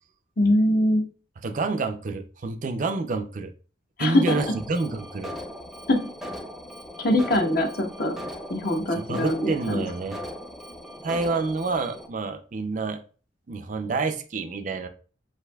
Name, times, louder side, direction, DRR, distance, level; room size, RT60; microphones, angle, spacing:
voice 1, 0.4-1.0 4.0-4.3 5.9-6.0 7.0-8.1 8.5-9.8, left 1 dB, 50° left, 2 dB, 0.9 m, -22 dB
voice 2, 1.4-3.5 4.0-5.3 9.0-10.2 11.0-13.0 13.5-14.9, right 3 dB, 45° right, 7 dB, 0.4 m, -28 dB
Alarm, 4.3-12.1, equal, ahead, 0.6 m, -39 dB
8.0 x 2.7 x 2.3 m, 0.38 s
head